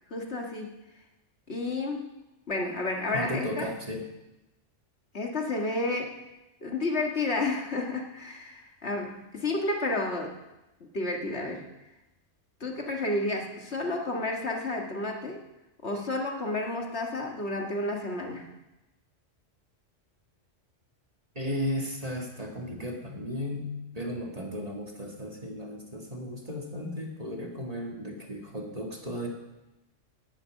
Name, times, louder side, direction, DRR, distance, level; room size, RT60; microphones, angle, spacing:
voice 1, 0.1-0.7 1.5-2.1 2.5-3.7 5.1-6.2 6.6-10.4 10.8-11.6 12.6-15.4 15.8-18.5, left 2 dB, 60° left, 1 dB, 2.1 m, -31 dB
voice 2, 3.1-4.1 21.3-29.3, left 1 dB, 30° right, 0 dB, 2.1 m, -35 dB
17.5 x 8.7 x 6.4 m, 0.99 s
omnidirectional pair, 1.3 m